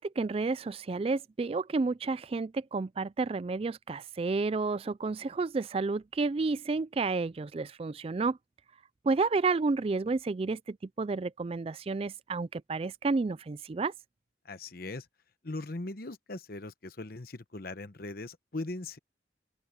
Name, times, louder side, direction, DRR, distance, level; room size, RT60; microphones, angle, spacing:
voice 1, 0.0-8.4 9.0-13.9, right 3 dB, 30° right, 0.3 m, -31 dB
voice 2, 14.4-15.0 15.4-19.0, left 2 dB, 50° left, 1.0 m, -39 dB
open air
head